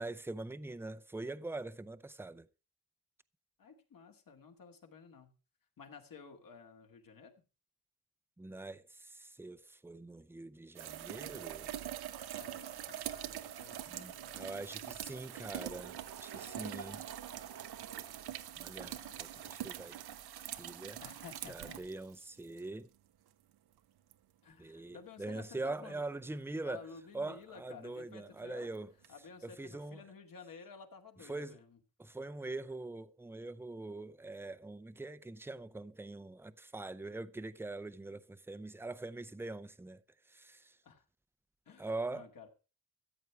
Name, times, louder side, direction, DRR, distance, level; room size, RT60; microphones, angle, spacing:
voice 1, 0.0-2.5 8.4-11.7 13.9-17.0 18.5-20.0 20.4-21.0 21.5-22.9 24.6-26.9 27.1-28.9 29.4-30.0 31.2-31.6 32.0-40.0 40.3-40.8 41.8-42.3, right 2 dB, 5° right, 0.6 m, -43 dB
voice 2, 3.6-5.3 5.8-7.3 12.2-15.4 18.8-19.6 21.0-21.8 24.4-26.0 26.6-28.7 29.1-31.8 40.8-41.0 41.7-42.5, left 6 dB, 60° left, 2.3 m, -54 dB
sound 1, 10.8-22.6 24.1-24.2 29.0-29.1, right 12 dB, 85° right, 0.8 m, -44 dB
Laughter / Crowd, 14.9-20.6, right 6 dB, 70° right, 1.7 m, -53 dB
14.0 x 8.2 x 4.6 m
cardioid pair, 90°, 37 cm